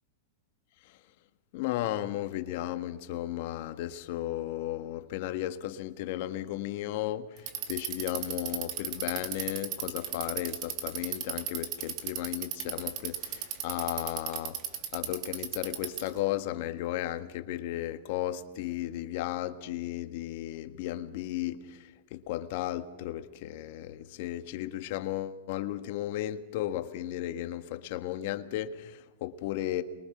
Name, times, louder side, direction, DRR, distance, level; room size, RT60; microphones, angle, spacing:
voice 1, 1.5-29.8, left 13 dB, 60° left, 1.5 m, -35 dB
Bicycle, 7.4-16.2, right 10 dB, 45° right, 2.2 m, -35 dB
29.0 x 22.5 x 6.1 m
hypercardioid pair, 130°, 0 cm